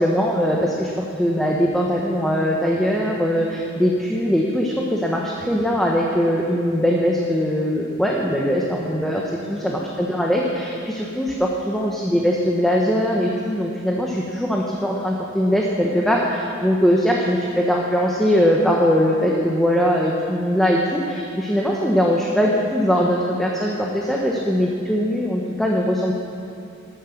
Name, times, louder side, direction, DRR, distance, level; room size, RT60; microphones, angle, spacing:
voice 1, 0.0-9.2 9.5-26.1, equal, ahead, -2 dB, 1.0 m, -21 dB
12.0 x 9.7 x 7.1 m, 2.6 s
head